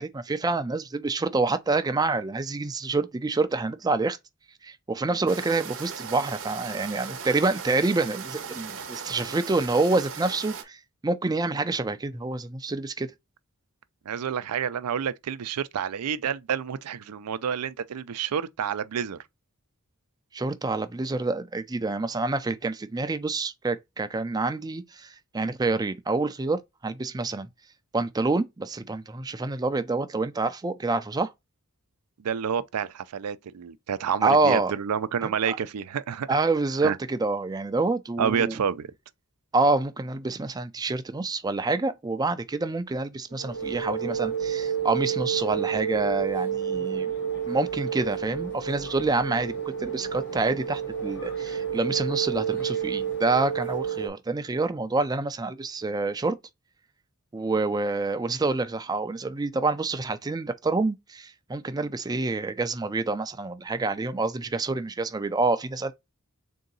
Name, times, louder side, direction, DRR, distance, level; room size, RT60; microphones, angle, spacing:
voice 1, 0.0-4.2 4.6-13.1 20.3-27.5 27.9-31.3 34.2-34.7 35.2-35.6 36.3-38.6 39.5-47.1 47.5-56.4 57.3-65.9, right 3 dB, 15° right, 0.4 m, -27 dB
sound 1, 5.3-10.6, right 6 dB, 60° right, 0.9 m, -38 dB
voice 2, 14.1-19.2 32.2-36.3 36.8-37.0 38.2-38.9, right 7 dB, 85° right, 0.4 m, -29 dB
sound 2, 43.3-54.1, right 8 dB, 55° left, 0.9 m, -30 dB
3.8 x 2.8 x 3.8 m
head